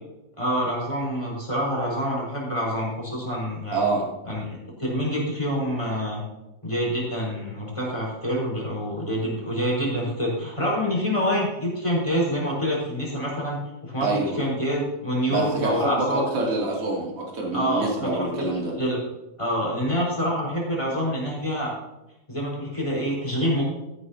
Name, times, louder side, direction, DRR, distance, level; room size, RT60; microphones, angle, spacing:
voice 1, 0.4-3.9 4.3-6.2 6.6-16.2 17.5-18.5 18.8-19.0 19.4-21.7 22.3-23.6, equal, 10° left, -4 dB, 4.1 m, -26 dB
voice 2, 3.7-4.0 14.0-14.4 15.3-18.7, right 2 dB, 40° right, -2 dB, 3.4 m, -26 dB
14.5 x 11.0 x 2.8 m, 0.97 s
omnidirectional pair, 4.4 m